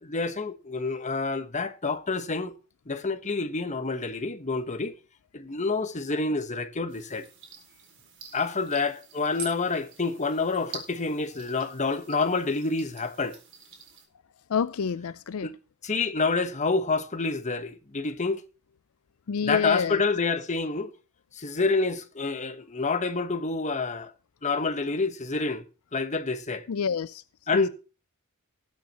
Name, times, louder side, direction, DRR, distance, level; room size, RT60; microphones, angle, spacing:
voice 1, 0.0-2.5 2.9-4.9 5.3-7.3 8.3-13.4 15.4-15.5 15.8-18.4 19.4-20.9 21.3-24.1 24.4-25.6 25.9-26.7 27.5-27.7, left 3 dB, 35° left, 1.3 m, -28 dB
sound 1, 6.9-14.1, right 5 dB, 60° right, 4.2 m, -46 dB
voice 2, 14.5-15.5 19.3-20.0 26.7-27.2 27.5-27.7, left 6 dB, 75° left, 0.5 m, -28 dB
19.5 x 8.1 x 3.0 m
head